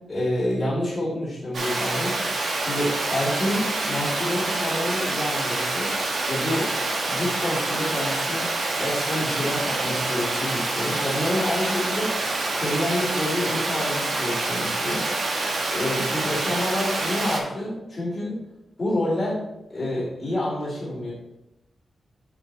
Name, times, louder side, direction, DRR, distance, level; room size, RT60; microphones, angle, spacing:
voice 1, 0.1-2.2 2.6-5.9 6.3-6.7 7.1-8.5 8.8-12.2 12.5-15.2 15.7-18.4 18.8-19.4 19.7-21.1, left 1 dB, 30° left, -11 dB, 2.3 m, -28 dB
Water, 1.5-17.4, right 2 dB, 55° right, 1.3 m, -27 dB
6.1 x 6.0 x 3.2 m, 0.94 s
wide cardioid pair, 170°, 0 cm